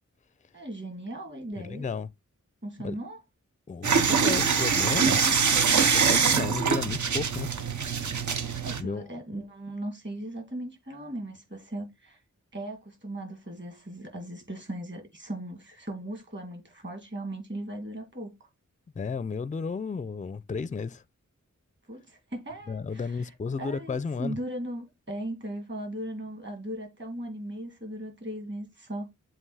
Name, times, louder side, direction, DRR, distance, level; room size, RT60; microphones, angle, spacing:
voice 1, 0.5-1.8 2.6-3.2 8.6-12.2 12.5-18.5 21.9-29.1, right 1 dB, 35° right, 2.5 m, -38 dB
voice 2, 1.6-2.1 2.8-3.0 3.7-5.2 5.8-7.5 7.9-8.2 8.8-9.1 19.0-21.0 22.7-24.4, left 5 dB, 25° left, 0.4 m, -33 dB
sound 1, 3.8-8.8, right 6 dB, 65° right, 0.7 m, -24 dB
7.6 x 2.6 x 4.8 m
wide cardioid pair, 60°, 32 cm